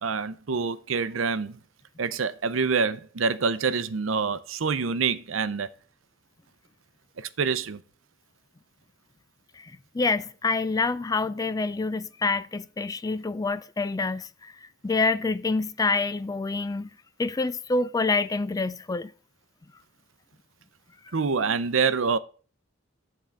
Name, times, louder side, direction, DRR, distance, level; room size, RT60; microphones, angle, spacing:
voice 1, 0.0-1.6 2.0-5.7 7.2-7.8 21.1-22.2, right 5 dB, 80° right, 0.6 m, -26 dB
voice 2, 9.6-14.5 14.8-16.9 17.2-19.1, left 3 dB, 20° left, 0.3 m, -27 dB
10.5 x 3.8 x 7.3 m
head